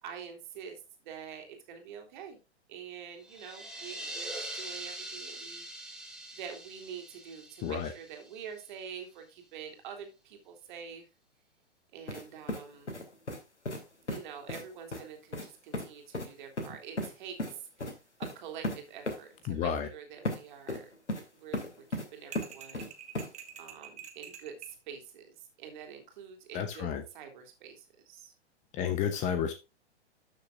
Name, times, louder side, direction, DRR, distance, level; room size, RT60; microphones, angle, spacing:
voice 1, 0.0-2.4 2.7-5.7 6.3-11.1 11.9-13.0 14.0-17.9 18.2-20.9 21.3-22.9 23.6-28.3, right 7 dB, 45° right, 2.8 m, -46 dB
sound 1, 3.2-8.8, right 1 dB, ahead, 1.5 m, -43 dB
sound 2, 12.1-12.2 12.5-13.4 13.7-13.8 14.1-14.2 14.5-14.6 14.9-15.0 15.3-15.5 15.7-15.9 16.1-16.3 16.6-17.1 17.4-17.5 17.8-17.9 18.2-18.3 18.6-18.8 19.1-19.2 20.3-20.4 20.7-21.2 21.5-22.1 22.4-22.9 23.2-23.3, left 1 dB, 80° left, 2.5 m, -34 dB
voice 2, 19.5-19.9 26.5-27.0 28.7-29.5, left 8 dB, 20° left, 0.8 m, -31 dB
sound 3, 22.3-24.8, right 8 dB, 20° right, 1.3 m, -47 dB
13.0 x 6.7 x 2.3 m
figure-of-eight pair, 115°, 35 cm